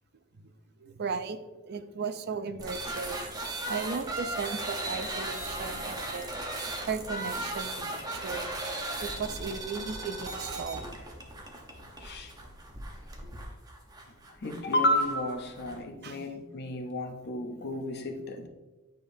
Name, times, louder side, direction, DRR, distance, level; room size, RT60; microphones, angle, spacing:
voice 1, 0.8-1.4 1.7-3.2 3.7-6.3 6.9-8.5 9.0-11.0 16.0-16.2, right 5 dB, 50° right, 10 dB, 0.4 m, -36 dB
sound 1, 2.6-15.8, right 2 dB, 20° right, 0.8 m, -37 dB
voice 2, 12.0-12.3 14.4-18.5, left 1 dB, 50° left, 5 dB, 0.7 m, -31 dB
9.0 x 5.0 x 2.7 m, 1.2 s
head